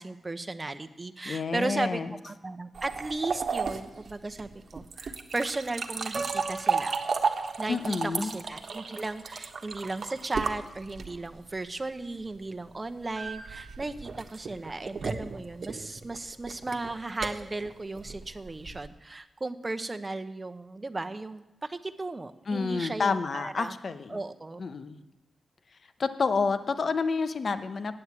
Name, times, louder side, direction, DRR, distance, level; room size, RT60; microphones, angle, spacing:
voice 1, 0.0-7.0 7.6-23.7 24.1-24.6, right 2 dB, 30° right, 9 dB, 0.9 m, -35 dB
voice 2, 1.3-2.2 7.7-8.3 22.5-24.2 24.6-25.0 26.0-28.0, left 4 dB, 65° left, 11 dB, 0.8 m, -29 dB
sound 1, 2.7-11.4 13.1-18.9, right 5 dB, 70° right, 1.2 m, -34 dB
Piano, 6.1-8.1, right 3 dB, 50° right, 1.0 m, -39 dB
9.4 x 8.9 x 8.3 m, 1.0 s
cardioid pair, 50°, 0 cm